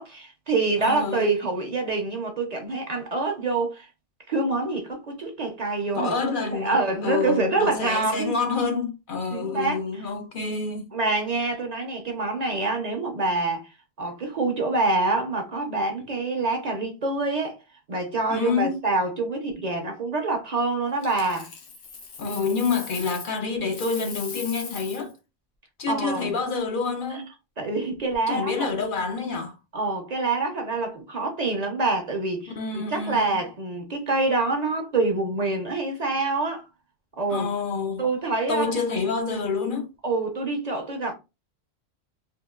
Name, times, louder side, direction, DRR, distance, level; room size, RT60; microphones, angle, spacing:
voice 1, 0.0-3.9 4.3-6.1 6.5-8.4 9.3-9.8 10.9-13.6 14.0-17.6 17.9-21.5 25.9-26.4 27.6-28.7 29.7-36.6 37.2-37.5 38.0-38.7 40.0-41.1, right 3 dB, 45° right, 0.6 m, -26 dB
voice 2, 0.8-1.3 5.9-10.9 18.3-18.8 22.2-25.1 25.8-27.3 28.3-29.6 32.6-33.4 37.3-38.1 38.5-39.9, left 4 dB, 60° left, 0.6 m, -27 dB
Coin (dropping), 21.0-23.4 23.6-25.1 27.9-28.1, left 5 dB, 80° left, 1.0 m, -39 dB
3.6 x 2.3 x 2.2 m
omnidirectional pair, 1.1 m